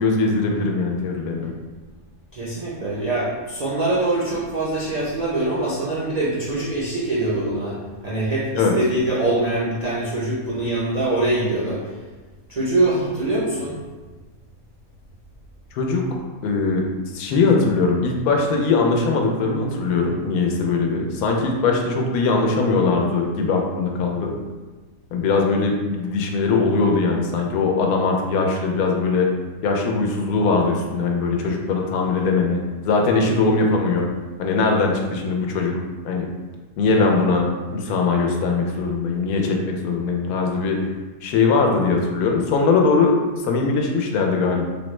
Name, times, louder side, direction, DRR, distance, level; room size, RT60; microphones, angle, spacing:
voice 1, 0.0-1.5 8.5-8.7 15.7-16.0 16.4-16.8 17.1-24.3 25.1-29.3 29.6-34.1 34.4-35.7 36.0-36.3 36.8-37.5 37.7-40.8 41.2-44.6, left 4 dB, 85° left, 1 dB, 1.1 m, -21 dB
voice 2, 2.3-7.7 8.0-8.5 8.7-11.8 12.5-13.8, right 2 dB, 80° right, -8 dB, 0.3 m, -23 dB
3.6 x 2.0 x 3.1 m, 1.3 s
omnidirectional pair, 1.6 m